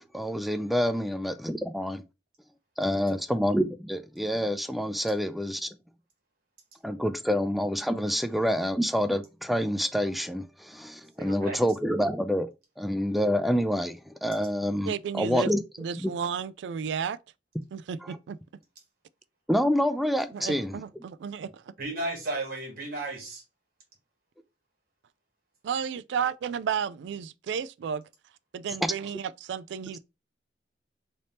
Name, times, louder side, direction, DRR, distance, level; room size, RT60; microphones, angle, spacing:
voice 1, 0.0-2.0 2.8-5.7 6.8-12.5 12.8-15.6 16.0-16.1 18.0-18.2 19.5-20.8, equal, ahead, 0.3 m, -27 dB
voice 2, 11.2-11.6 21.8-23.4, right 2 dB, 60° right, 1.7 m, -34 dB
voice 3, 14.9-15.5 15.8-17.2 17.7-18.4 20.3-21.6 25.6-28.0 28.5-30.0, right 7 dB, 80° right, 0.3 m, -32 dB
3.4 x 2.8 x 4.1 m
head